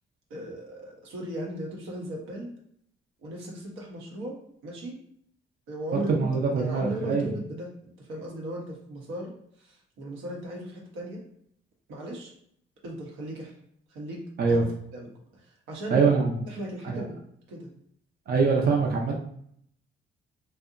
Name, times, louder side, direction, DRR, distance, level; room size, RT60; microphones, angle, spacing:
voice 1, 0.3-2.5 3.2-4.9 5.7-6.3 6.6-7.7 8.0-11.2 11.9-12.3 12.8-13.5 13.9-14.6 14.9-16.1 16.5-17.2 17.5-17.7, right 1 dB, 90° right, -2 dB, 0.8 m, -37 dB
voice 2, 6.1-7.3 14.4-14.6 15.9-16.3 16.8-17.0 18.3-19.2, right 4 dB, 50° right, 0 dB, 0.5 m, -23 dB
2.7 x 2.1 x 2.4 m, 0.68 s
cardioid pair, 90°, 20 cm